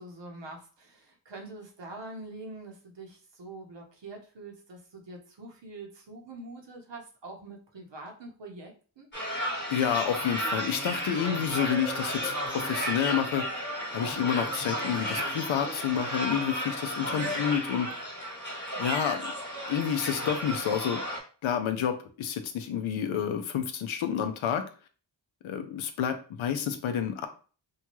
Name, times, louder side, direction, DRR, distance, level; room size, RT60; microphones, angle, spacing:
voice 1, 0.0-9.1 17.1-17.4, right 2 dB, 65° right, 1 dB, 0.9 m, -44 dB
sound 1, 9.1-21.2, equal, 25° left, 1.2 m, -33 dB
voice 2, 9.7-13.6 13.9-17.9 18.8-19.3 19.7-21.0 21.4-24.6 25.4-27.3, left 8 dB, 85° left, 7 dB, 0.6 m, -29 dB
2.8 x 2.3 x 3.0 m, 0.38 s
cardioid pair, 50°, 46 cm